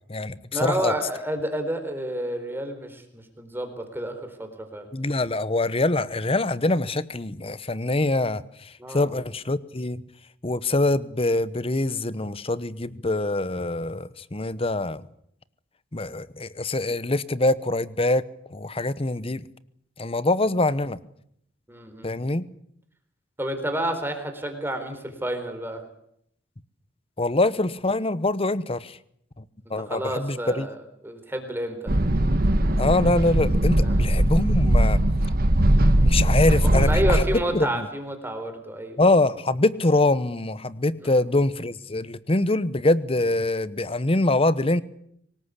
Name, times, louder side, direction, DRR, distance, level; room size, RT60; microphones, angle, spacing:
voice 1, 0.0-0.9 4.9-8.4 8.9-10.0 10.4-15.1 15.9-18.2 18.5-19.4 20.0-21.0 22.0-22.5 27.2-29.0 29.7-30.7 32.8-35.0 36.0-37.9 39.0-44.8, left 2 dB, 30° left, 16 dB, 1.0 m, -24 dB
voice 2, 0.5-4.9 8.8-9.2 21.7-22.2 23.4-25.8 29.8-30.8 31.0-31.9 33.8-34.0 36.7-39.0 41.0-41.2, right 1 dB, 10° right, 6 dB, 4.2 m, -30 dB
sound 1, 31.9-37.3, right 1 dB, 50° right, 1.5 m, -20 dB
24.5 x 20.0 x 8.4 m, 0.70 s
head